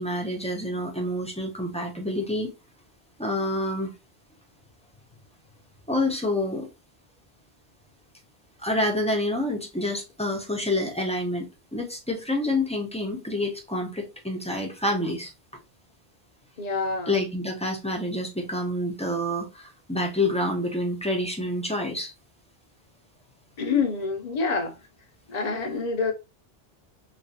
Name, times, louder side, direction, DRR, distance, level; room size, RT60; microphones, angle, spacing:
voice 1, 0.0-2.5 3.2-3.9 5.9-6.7 8.6-11.5 11.7-15.3 17.1-22.1, left 1 dB, 10° left, 0.6 m, -28 dB
voice 2, 16.6-17.1 23.6-24.8 25.3-26.1, left 4 dB, 45° left, 0.7 m, -27 dB
4.9 x 2.3 x 2.7 m
omnidirectional pair, 1.1 m